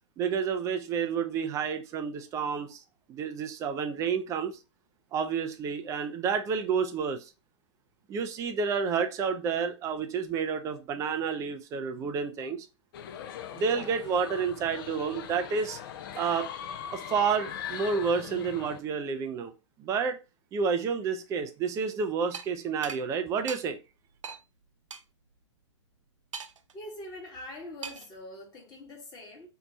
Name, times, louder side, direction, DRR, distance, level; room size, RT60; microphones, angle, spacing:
voice 1, 0.2-2.8 3.1-4.6 5.1-7.3 8.1-12.7 13.5-15.8 16.2-16.5 16.9-19.5 19.8-20.2 20.5-23.8, right 6 dB, 20° right, 0.4 m, -30 dB
sound 1, 12.9-18.8, left 9 dB, 45° left, 0.4 m, -41 dB
sound 2, 22.3-22.5 22.8-23.0 23.5-23.6 24.2-24.4 24.9-25.0 26.3-26.7 27.8-28.1, right 6 dB, 85° right, 0.4 m, -39 dB
voice 2, 26.7-29.5, left 1 dB, 25° left, 1.1 m, -43 dB
2.7 x 2.1 x 3.9 m
figure-of-eight pair, 115°, 16 cm